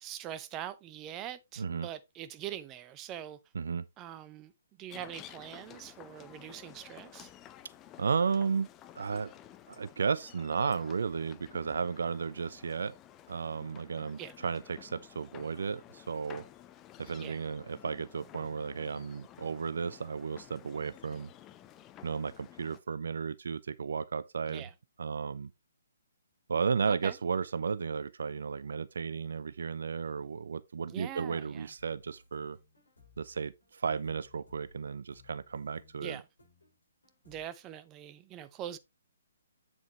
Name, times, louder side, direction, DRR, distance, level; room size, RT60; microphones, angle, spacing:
voice 1, 0.0-3.4 4.0-4.5 4.8-7.3 14.2-14.3 17.2-17.4 24.5-24.7 26.9-27.1 30.9-31.7 36.0-36.3 37.3-38.8, right 11 dB, 20° right, 0.7 m, -43 dB
voice 2, 1.6-1.9 3.5-3.8 8.0-8.7 9.0-9.3 9.7-12.9 13.3-16.4 17.0-21.3 22.0-24.7 25.0-25.5 26.5-32.6 33.2-36.2, right 5 dB, 60° right, 0.4 m, -34 dB
sound 1, 4.9-22.8, left 12 dB, 20° left, 0.6 m, -53 dB
sound 2, 31.8-37.5, left 3 dB, 70° left, 6.1 m, -61 dB
8.0 x 7.2 x 3.0 m
figure-of-eight pair, 130°, 0 cm